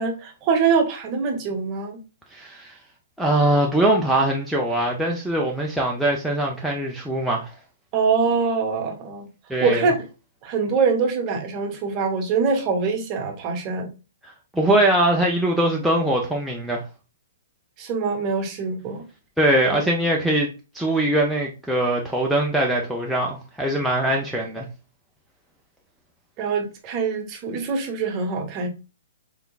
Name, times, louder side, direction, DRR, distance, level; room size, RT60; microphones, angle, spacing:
voice 1, 0.0-2.0 7.9-9.3 9.6-10.0 10.4-13.9 17.8-19.0 19.7-19.8 26.4-28.7, right 5 dB, 30° right, 1.0 m, -24 dB
voice 2, 2.3-2.8 3.2-7.5 9.5-9.9 14.2-16.8 19.4-20.5 20.7-24.7, right 1 dB, ahead, 0.6 m, -22 dB
3.5 x 3.5 x 2.3 m
hypercardioid pair, 140°, 0 cm